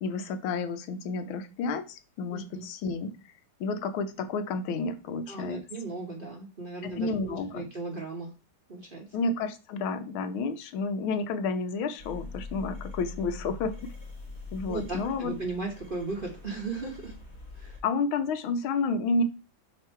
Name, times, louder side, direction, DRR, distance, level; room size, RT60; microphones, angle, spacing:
voice 1, 0.0-3.1 3.6-5.6 6.8-7.7 9.1-13.7 14.5-15.3 17.8-19.2, left 4 dB, 85° left, 9 dB, 1.5 m, -30 dB
voice 2, 2.3-2.6 5.3-8.3 8.7-9.0 14.7-17.1 17.5-17.8, right 3 dB, 40° right, -1 dB, 0.8 m, -36 dB
sound 1, 12.0-17.8, left 3 dB, 35° left, 1.5 m, -43 dB
5.8 x 3.7 x 4.4 m, 0.32 s
omnidirectional pair, 2.2 m